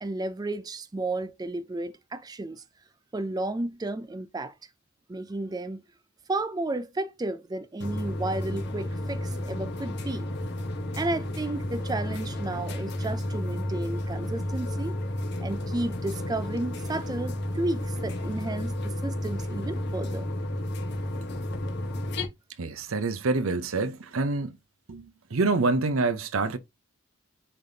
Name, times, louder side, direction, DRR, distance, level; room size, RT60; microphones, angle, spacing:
voice 1, 0.0-2.6 3.1-4.5 5.1-5.8 6.3-10.3 10.9-15.0 15.4-20.3, right 2 dB, 20° right, 0.4 m, -32 dB
sound 1, 7.8-22.3, left 1 dB, 55° left, 1.2 m, -32 dB
voice 2, 22.6-24.5 24.9-26.6, right 3 dB, 80° right, 0.7 m, -26 dB
9.8 x 3.5 x 2.7 m
head